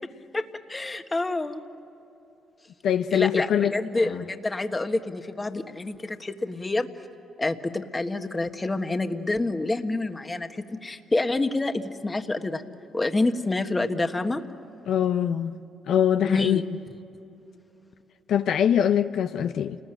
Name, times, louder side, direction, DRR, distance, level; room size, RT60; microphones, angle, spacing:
voice 1, 0.3-1.6 3.1-6.9 7.4-12.6 12.9-14.4 16.2-16.6, left 2 dB, 20° left, 1.5 m, -27 dB
voice 2, 2.8-3.7 4.1-4.2 14.9-15.6 15.9-16.6 18.3-19.8, left 9 dB, 75° left, 0.7 m, -23 dB
29.5 x 20.0 x 9.0 m
cardioid pair, 90°, 0 cm